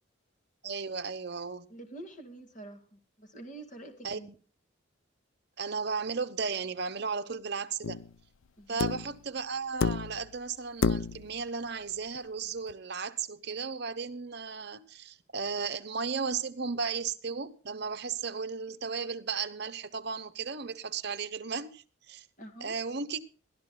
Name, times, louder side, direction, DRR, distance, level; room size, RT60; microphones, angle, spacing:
voice 1, 0.6-1.7 4.0-4.3 5.6-8.0 8.7-22.2 22.6-23.3, right 5 dB, 55° right, 0.9 m, -35 dB
voice 2, 1.7-4.3 8.6-8.9 22.4-22.8, right 2 dB, 35° left, 1.9 m, -47 dB
sound 1, 7.8-8.1 8.8-9.2 9.8-10.3 10.8-11.3 12.7-12.8, left 5 dB, 75° left, 0.5 m, -30 dB
22.5 x 13.0 x 2.2 m
head